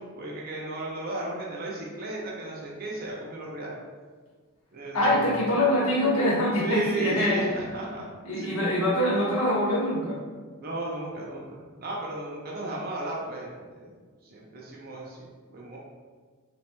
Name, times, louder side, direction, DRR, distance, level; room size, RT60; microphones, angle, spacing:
voice 1, 0.1-3.7 4.7-5.0 5.3-5.4 6.6-8.0 8.4-8.5 10.6-13.9 14.2-15.3 15.5-15.8, right 2 dB, 45° right, -3 dB, 0.6 m, -35 dB
voice 2, 4.9-7.5 8.2-10.2, left 1 dB, 80° left, -5 dB, 1.1 m, -24 dB
4.3 x 3.2 x 2.2 m, 1.5 s
head